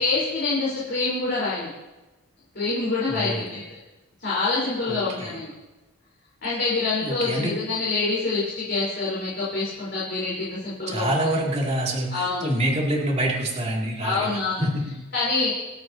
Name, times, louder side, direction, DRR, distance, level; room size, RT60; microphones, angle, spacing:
voice 1, 0.0-1.7 2.5-3.6 4.2-5.5 6.4-11.3 12.1-12.5 14.0-14.6 15.1-15.5, left 3 dB, 50° left, -8 dB, 4.4 m, -26 dB
voice 2, 3.1-3.6 4.9-5.3 7.0-7.5 10.9-15.0, right 1 dB, 30° right, -3 dB, 2.8 m, -26 dB
27.0 x 9.1 x 2.9 m, 1.1 s
head